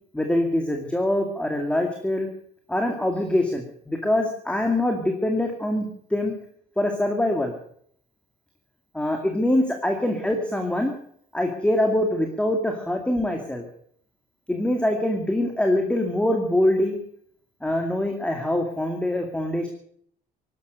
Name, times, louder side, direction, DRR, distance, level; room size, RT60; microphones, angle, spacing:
voice 1, 0.1-2.3 2.7-6.3 6.8-7.5 8.9-10.9 11.3-13.6 14.5-17.0 17.6-19.7, left 1 dB, 5° left, 3 dB, 2.3 m, -24 dB
18.0 x 12.0 x 6.6 m, 0.64 s
cardioid pair, 110°, 17 cm